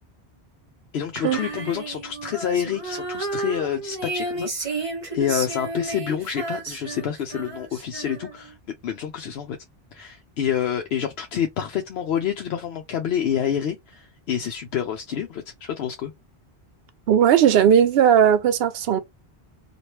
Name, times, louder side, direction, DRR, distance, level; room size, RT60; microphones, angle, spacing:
voice 1, 0.9-8.6 8.8-9.6 9.9-16.1, left 9 dB, 80° left, 0.8 m, -28 dB
Female singing, 1.2-8.5, right 3 dB, 35° right, 1.0 m, -32 dB
voice 2, 17.1-19.0, right 9 dB, 70° right, 0.8 m, -17 dB
2.9 x 2.5 x 3.1 m
omnidirectional pair, 1.1 m